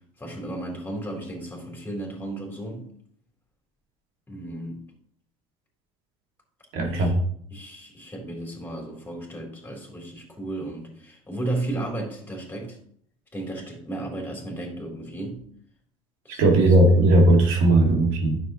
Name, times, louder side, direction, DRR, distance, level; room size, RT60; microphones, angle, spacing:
voice 1, 0.2-2.8 4.3-4.8 6.8-7.1 7.5-12.8 13.3-15.4 16.2-16.6, right 2 dB, 10° left, 0 dB, 3.7 m, -34 dB
voice 2, 6.7-7.2 16.4-18.4, right 1 dB, 70° right, 1 dB, 2.3 m, -17 dB
9.7 x 7.1 x 3.1 m, 0.62 s
hypercardioid pair, 85°, 16 cm